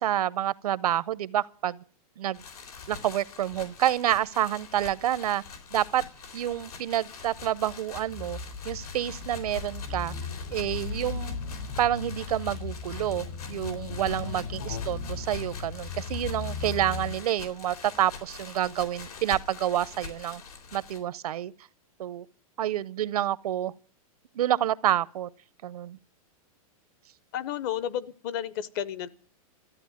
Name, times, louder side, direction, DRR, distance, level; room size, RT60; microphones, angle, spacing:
voice 1, 0.0-1.8 2.2-2.4 2.9-5.4 5.7-6.0 6.3-8.4 8.6-10.1 10.5-11.4 11.8-20.4 20.7-21.5 22.0-22.2 22.6-23.7 24.3-25.3 25.6-26.0, right 12 dB, 85° right, 0.7 m, -28 dB
sound 1, 2.3-21.0, left 5 dB, 85° left, 3.7 m, -44 dB
sound 2, 8.1-17.1, left 5 dB, 60° left, 4.7 m, -37 dB
voice 2, 14.6-14.9 27.3-29.1, left 10 dB, 35° left, 0.7 m, -32 dB
14.0 x 8.9 x 9.2 m
supercardioid pair, 165°, 19 cm